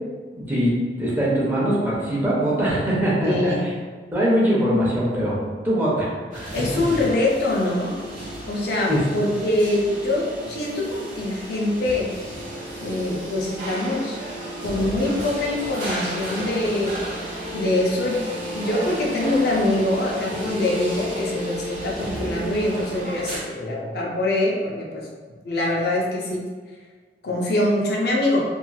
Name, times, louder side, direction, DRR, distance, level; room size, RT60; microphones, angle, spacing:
voice 1, 0.4-0.7 1.0-3.7 4.1-5.4 5.6-6.5 8.9-9.0, equal, 10° right, -7 dB, 0.6 m, -22 dB
voice 2, 3.2-3.6 6.5-8.0 8.5-12.1 12.8-14.2 14.6-16.9 17.5-18.2 18.5-25.1 25.4-26.4 27.2-28.4, left 1 dB, 60° left, -3 dB, 0.5 m, -24 dB
sound 1, 6.3-23.4, equal, 50° right, 0.8 m, -32 dB
2.9 x 2.5 x 2.3 m, 1.5 s
head